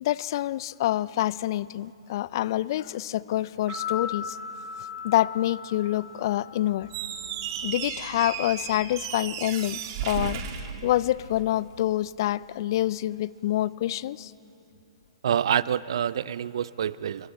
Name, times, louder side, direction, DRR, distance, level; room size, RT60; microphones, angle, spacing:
voice 1, 0.0-4.4 5.0-6.9 7.6-10.4 10.8-14.3, left 14 dB, 50° left, 21 dB, 0.4 m, -27 dB
sound 1, 3.5-7.7 8.0-8.1, left 7 dB, 15° right, 4.7 m, -38 dB
Squeak, 6.8-11.5, right 8 dB, 45° right, 1.8 m, -34 dB
voice 2, 15.2-17.3, right 9 dB, 60° right, 20 dB, 0.5 m, -27 dB
29.0 x 22.0 x 4.4 m, 2.7 s
figure-of-eight pair, 120°, 3 cm